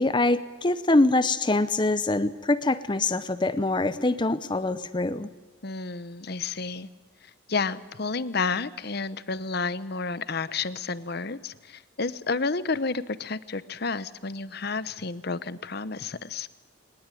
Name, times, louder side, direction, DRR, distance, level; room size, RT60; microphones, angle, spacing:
voice 1, 0.0-5.3, left 2 dB, 25° left, 13 dB, 0.6 m, -24 dB
voice 2, 5.6-6.9 7.5-16.5, left 4 dB, 50° left, 15 dB, 0.9 m, -31 dB
22.0 x 20.0 x 9.2 m, 1.3 s
head